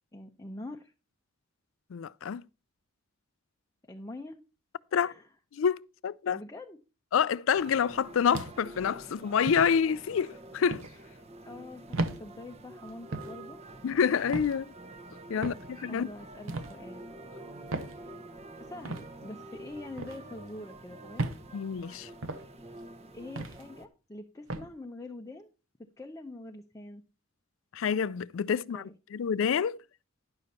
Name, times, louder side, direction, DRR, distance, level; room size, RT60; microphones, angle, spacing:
voice 1, 0.1-0.9 3.9-4.4 5.0-5.3 6.2-6.8 11.5-13.6 15.4-15.5 15.9-17.1 17.9-18.1 18.6-21.4 23.1-25.5 26.0-27.0 28.7-28.9, left 2 dB, 15° left, 0.6 m, -44 dB
voice 2, 1.9-2.4 4.9-5.1 5.5-6.4 7.1-10.8 13.8-14.7 15.3-15.5 15.8-16.1 21.5-22.1 27.7-29.8, left 7 dB, 70° left, 0.4 m, -27 dB
sound 1, 7.5-23.9, right 2 dB, 30° right, 0.9 m, -48 dB
sound 2, 8.3-8.8 9.5-9.7 10.7-10.9 11.9-12.2 13.1-13.4 14.3-14.6 15.4-15.7 16.5-16.7 17.7-18.0 18.8-19.1 20.0-20.2 21.2-21.4 22.2-22.5 23.4-23.6 24.5-24.7, right 2 dB, 70° right, 0.9 m, -34 dB
10.5 x 6.8 x 4.1 m
head